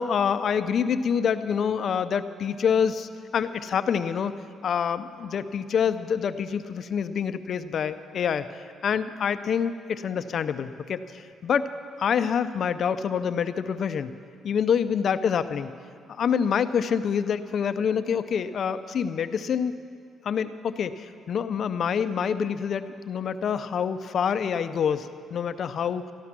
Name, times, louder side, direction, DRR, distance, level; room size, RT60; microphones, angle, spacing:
voice 1, 0.0-4.3 4.6-11.7 12.0-14.1 14.4-15.7 16.1-19.8 20.2-26.1, left 7 dB, 60° left, 11 dB, 0.6 m, -26 dB
14.0 x 12.5 x 6.0 m, 2.2 s
cardioid pair, 90°, 0 cm